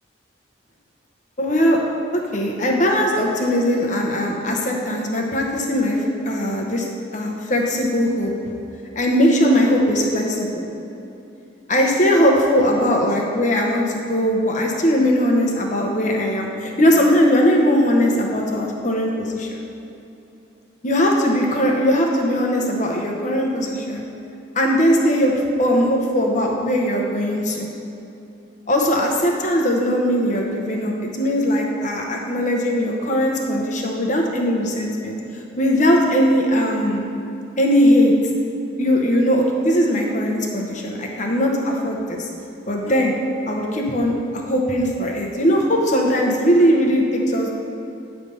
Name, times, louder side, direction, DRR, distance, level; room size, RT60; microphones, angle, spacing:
voice 1, 1.4-1.8 2.1-6.9 7.1-8.3 9.0-10.6 11.7-19.6 20.8-24.1 24.5-27.7 28.7-35.2 35.6-37.0 37.6-38.1 38.8-42.3 42.7-43.1 43.5-47.6, equal, 40° left, 0 dB, 0.8 m, -19 dB
8.9 x 3.4 x 5.4 m, 2.9 s
head